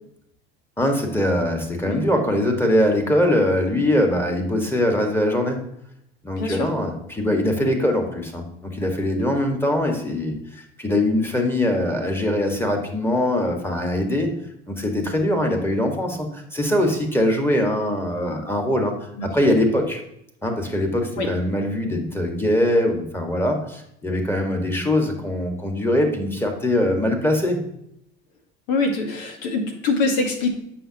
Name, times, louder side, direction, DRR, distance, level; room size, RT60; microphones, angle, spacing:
voice 1, 0.8-5.6 6.2-14.3 14.7-18.9 19.2-20.0 20.4-27.6, left 1 dB, 5° left, 3 dB, 1.6 m, -22 dB
voice 2, 6.4-6.7 19.2-19.3 21.2-21.3 28.7-30.5, left 3 dB, 75° left, 3 dB, 1.6 m, -24 dB
7.7 x 5.7 x 2.9 m, 0.76 s
hypercardioid pair, 80°, 32 cm